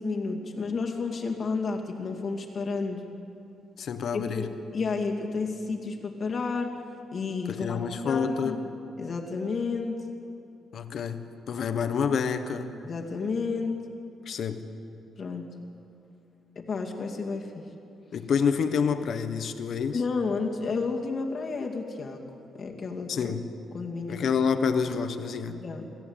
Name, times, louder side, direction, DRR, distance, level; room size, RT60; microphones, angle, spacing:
voice 1, 0.0-3.0 4.4-6.8 7.1-8.6 9.0-10.0 12.8-13.9 15.2-15.6 16.6-17.7 19.9-22.2 22.5-23.3 23.7-24.3 25.6-25.9, left 4 dB, 40° left, 1 dB, 2.3 m, -31 dB
voice 2, 3.8-4.5 7.5-8.6 10.7-12.7 14.3-14.7 18.1-20.0 23.1-23.5 24.1-25.6, left 6 dB, 55° left, 9 dB, 1.3 m, -28 dB
26.0 x 14.5 x 8.8 m, 2.7 s
cardioid pair, 145°, 0 cm